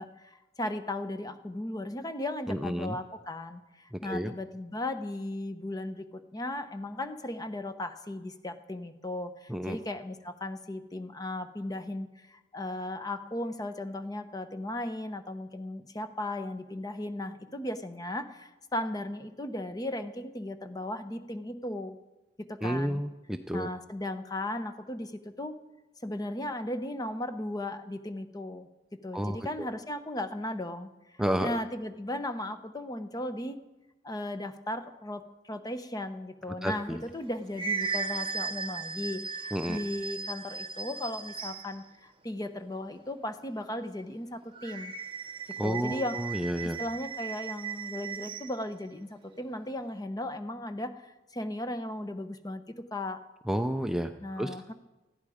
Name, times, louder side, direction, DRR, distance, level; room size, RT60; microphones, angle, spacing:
voice 1, 0.0-22.0 22.4-23.0 23.5-25.6 26.0-28.7 29.0-30.9 31.4-33.6 34.0-44.9 45.6-46.2 46.6-53.2 54.2-54.7, left 1 dB, 20° left, 10 dB, 0.9 m, -36 dB
voice 2, 2.5-3.0 3.9-4.3 9.5-9.8 22.6-23.7 29.1-29.7 31.2-31.6 36.6-37.0 39.5-39.8 45.6-46.8 53.5-54.1 54.4-54.5, equal, 5° right, 6 dB, 0.5 m, -31 dB
sound 1, 37.1-41.8 44.6-48.6, right 5 dB, 30° right, 1.0 m, -37 dB
19.5 x 14.0 x 5.0 m, 1.0 s
head